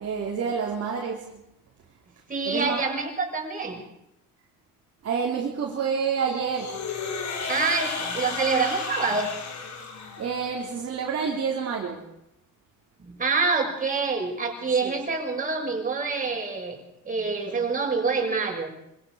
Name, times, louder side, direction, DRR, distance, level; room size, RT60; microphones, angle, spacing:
voice 1, 0.0-1.4 2.5-2.9 5.0-6.8 10.2-12.1 14.8-15.0 17.5-17.6, right 6 dB, 45° right, -2 dB, 3.8 m, -28 dB
voice 2, 2.3-3.8 7.5-9.3 13.0-18.7, right 4 dB, 25° right, 0 dB, 6.7 m, -26 dB
sound 1, 6.5-10.6, left 5 dB, 55° left, 4.8 m, -33 dB
26.0 x 17.0 x 6.6 m, 0.81 s
cardioid pair, 110°, 34 cm